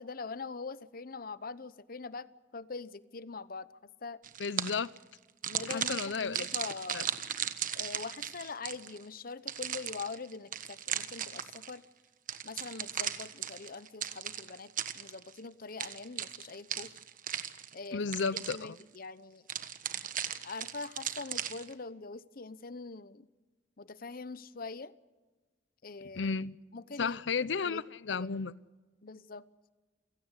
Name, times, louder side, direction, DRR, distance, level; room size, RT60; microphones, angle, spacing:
voice 1, 0.0-4.2 5.5-7.1 7.7-11.8 12.4-16.9 17.7-18.0 18.5-19.4 20.4-23.3 23.8-24.9 25.8-26.4 26.7-27.2 27.6-27.8 28.1-28.3 29.0-29.5, left 4 dB, 50° left, 0.9 m, -43 dB
sound 1, 4.2-5.0 5.4-9.0 9.5-11.8 12.3-15.4 15.8-17.9 18.1-18.8 19.5-21.7, right 9 dB, 50° right, 1.3 m, -37 dB
voice 2, 4.4-4.9 5.7-6.5 6.9-7.0 17.9-18.8 26.1-26.6 27.0-28.5, left 5 dB, 80° left, 0.7 m, -33 dB
29.0 x 17.0 x 8.1 m
head